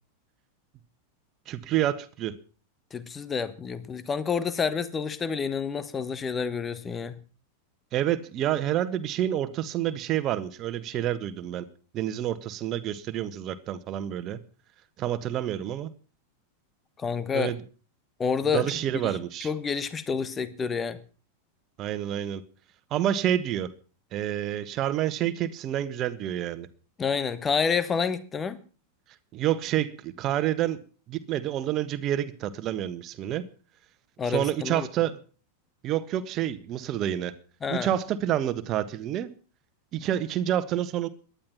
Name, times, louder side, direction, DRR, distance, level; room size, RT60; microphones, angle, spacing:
voice 1, 1.5-2.3 7.9-11.6 11.9-14.4 15.0-15.9 17.3-17.6 18.5-19.5 21.8-22.4 22.9-23.7 24.1-26.7 29.3-30.8 31.1-33.4 34.2-35.2 35.8-37.3 37.7-39.3 39.9-41.1, right 11 dB, 35° right, 12 dB, 1.5 m, -28 dB
voice 2, 2.9-7.2 17.0-17.5 18.2-18.7 19.0-19.1 19.4-21.0 27.0-28.6 34.2-34.9 37.6-37.9, left 6 dB, 20° left, 15 dB, 1.4 m, -28 dB
18.0 x 12.0 x 5.9 m, 0.39 s
figure-of-eight pair, 90°, 0 cm